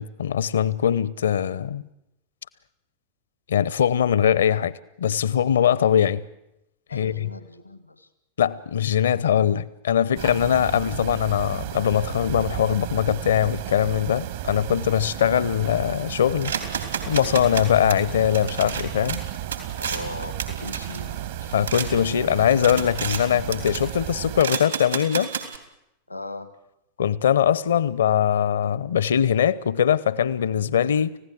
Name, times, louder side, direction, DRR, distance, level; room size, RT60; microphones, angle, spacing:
voice 1, 0.0-1.9 3.5-4.7 5.0-6.2 6.9-7.3 8.4-19.2 21.5-25.3 27.0-31.2, left 9 dB, 65° left, 0.9 m, -22 dB
voice 2, 6.9-8.1 19.8-21.2 26.1-26.5, left 2 dB, 85° left, 1.5 m, -38 dB
sound 1, 10.1-24.4, right 13 dB, 55° right, 1.5 m, -34 dB
sound 2, 16.4-21.9 22.3-23.2 23.5-24.0 24.4-25.6, right 6 dB, 75° right, 3.2 m, -32 dB
30.0 x 16.0 x 7.8 m
figure-of-eight pair, 90°, 0 cm